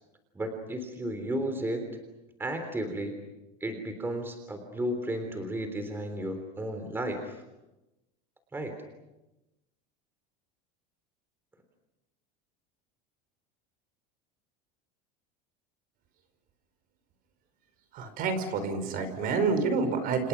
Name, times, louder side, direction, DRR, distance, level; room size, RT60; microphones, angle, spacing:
voice 1, 0.4-1.9 2.4-3.1 3.6-7.4 8.5-8.7, right 1 dB, 10° right, 6 dB, 3.5 m, -33 dB
voice 2, 17.9-20.3, right 4 dB, 45° right, 9 dB, 5.2 m, -28 dB
29.5 x 28.5 x 6.0 m, 0.98 s
supercardioid pair, 150°, 21 cm